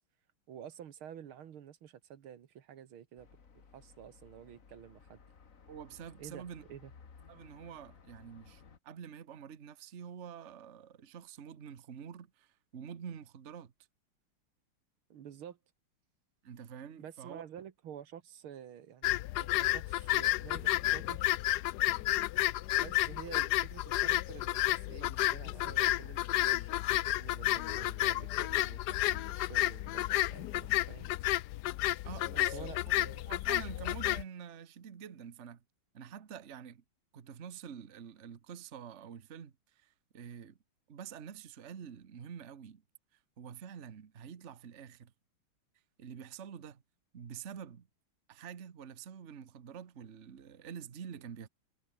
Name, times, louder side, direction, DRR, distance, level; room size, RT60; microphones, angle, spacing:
voice 1, 0.5-3.3 3.7-5.2 6.2-6.9 15.1-15.6 17.0-21.2 22.8-31.1 32.3-33.3, right 9 dB, 80° right, 2.2 m, -50 dB
sound 1, 3.2-8.8, left 5 dB, 40° left, 2.0 m, -58 dB
voice 2, 5.7-6.6 7.3-13.7 16.4-17.4 32.0-32.7 33.2-35.6 35.9-36.8 37.1-40.6 40.9-42.8 43.4-45.1 46.0-46.8 47.1-47.9 48.3-51.5, right 7 dB, 40° right, 1.3 m, -47 dB
sound 2, 19.0-34.2, left 15 dB, 90° left, 0.9 m, -31 dB
omnidirectional pair, 2.3 m